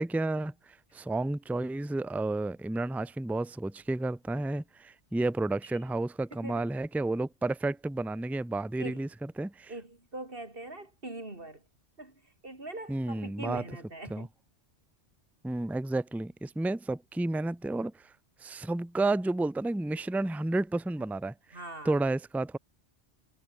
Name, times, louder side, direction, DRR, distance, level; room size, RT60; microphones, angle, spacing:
voice 1, 0.0-9.1 9.4-9.7 12.9-13.6 14.1-14.3 15.4-18.1 18.4-21.3 21.8-22.6, right 2 dB, ahead, 0.7 m, -31 dB
voice 2, 6.3-6.7 8.8-9.1 9.7-11.6 12.0-14.3 21.5-22.0, right 2 dB, 50° right, 4.8 m, -42 dB
omnidirectional pair, 1.2 m